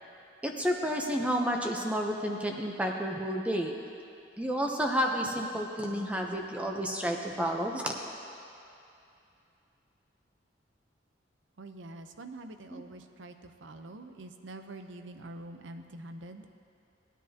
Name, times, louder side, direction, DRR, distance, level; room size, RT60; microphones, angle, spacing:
voice 1, 0.4-3.8 4.4-7.9 12.7-12.8, equal, 5° right, 1 dB, 0.6 m, -30 dB
voice 2, 11.6-16.5, right 2 dB, 80° right, 7 dB, 0.6 m, -45 dB
18.0 x 10.0 x 2.8 m, 2.6 s
head